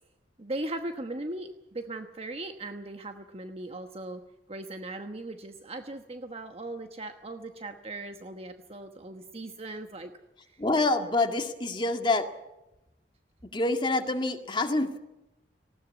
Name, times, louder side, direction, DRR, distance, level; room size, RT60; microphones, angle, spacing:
voice 1, 0.4-4.2 4.5-10.1, right 2 dB, 35° right, 6 dB, 1.2 m, -38 dB
voice 2, 10.6-12.3 13.5-15.0, left 2 dB, 25° left, 5 dB, 2.0 m, -26 dB
19.5 x 17.0 x 9.4 m, 0.93 s
head